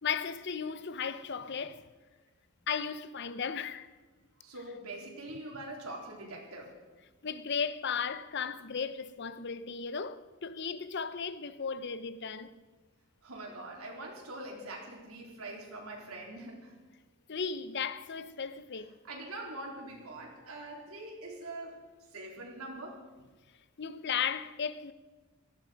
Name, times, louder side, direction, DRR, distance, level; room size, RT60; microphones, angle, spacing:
voice 1, 0.0-1.8 2.7-3.9 7.2-12.5 17.3-18.9 23.8-24.9, left 6 dB, 50° left, 0.7 m, -35 dB
voice 2, 4.4-6.8 13.2-16.7 19.0-21.8 22.1-23.0, right 2 dB, 90° right, 3.9 m, -43 dB
18.0 x 14.5 x 5.2 m
head